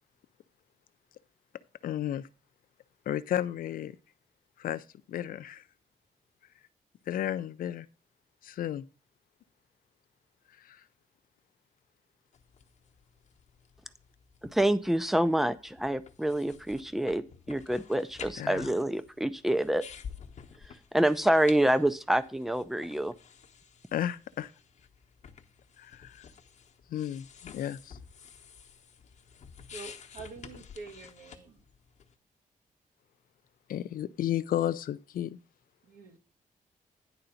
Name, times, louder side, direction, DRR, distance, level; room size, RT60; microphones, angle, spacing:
voice 1, 1.8-2.3 3.1-3.9 4.6-4.8 5.1-5.6 7.1-7.9 8.4-8.8 18.4-18.7 23.9-24.5 25.8-26.2 26.9-28.0 33.7-35.4, left 11 dB, 85° left, 0.6 m, -33 dB
sound 1, 12.3-32.1, left 7 dB, 55° left, 1.0 m, -51 dB
voice 2, 14.5-19.8 20.9-23.1, right 1 dB, ahead, 0.5 m, -27 dB
voice 3, 29.7-31.6 35.8-36.2, right 3 dB, 75° right, 1.6 m, -46 dB
10.0 x 3.9 x 7.1 m
wide cardioid pair, 165°, 14 cm